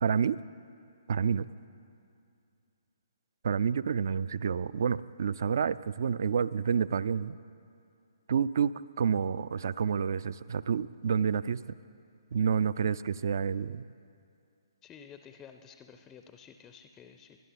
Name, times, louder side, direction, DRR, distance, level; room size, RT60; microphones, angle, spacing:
voice 1, 0.0-0.4 1.1-1.5 3.4-7.4 8.3-11.6 12.3-13.8, right 6 dB, 50° right, 18 dB, 0.3 m, -29 dB
voice 2, 14.8-17.4, left 7 dB, 15° left, 7 dB, 0.5 m, -52 dB
21.0 x 11.0 x 4.0 m, 2.4 s
figure-of-eight pair, 130°, 2 cm